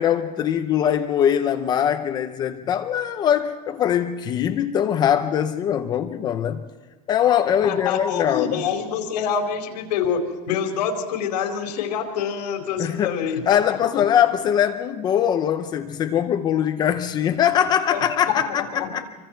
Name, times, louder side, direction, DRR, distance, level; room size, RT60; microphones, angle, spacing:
voice 1, 0.0-6.6 7.1-8.6 12.8-13.1 13.5-19.0, left 9 dB, 20° left, 8 dB, 0.7 m, -22 dB
voice 2, 7.6-13.6 17.9-18.4 18.7-19.0, left 7 dB, 90° left, 2 dB, 4.4 m, -26 dB
27.0 x 24.5 x 4.5 m, 1.3 s
supercardioid pair, 180°, 21 cm